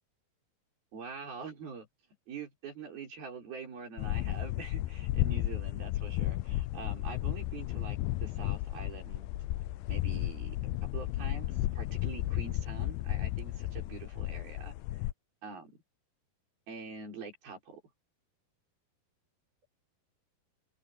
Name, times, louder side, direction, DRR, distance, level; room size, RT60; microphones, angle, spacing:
voice 1, 0.9-1.9 2.3-9.3 9.9-10.6 10.9-15.0 15.4-15.8 16.7-17.8, right 5 dB, 75° right, 7.1 m, -45 dB
sound 1, 4.0-15.1, left 16 dB, 85° left, 2.3 m, -33 dB
open air
omnidirectional pair, 4.3 m